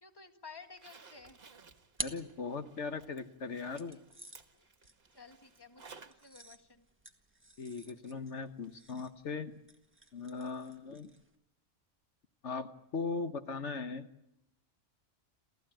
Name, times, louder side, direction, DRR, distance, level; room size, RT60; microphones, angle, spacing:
voice 1, 0.0-1.4 3.9-4.0 4.5-4.7 5.1-6.9, left 5 dB, 20° left, 6 dB, 1.7 m, -54 dB
Zipper (clothing), 0.6-6.3 6.6-6.7 8.6-8.7 9.1-9.2, right 5 dB, 55° right, 1.6 m, -58 dB
sound 1, 1.3-3.1 3.8-11.4, right 1 dB, 10° right, 1.5 m, -49 dB
voice 2, 2.0-4.0 7.6-9.5 10.1-11.1 12.4-14.1, left 4 dB, 75° left, 9 dB, 1.5 m, -39 dB
28.5 x 15.0 x 9.0 m, 0.85 s
omnidirectional pair, 1.2 m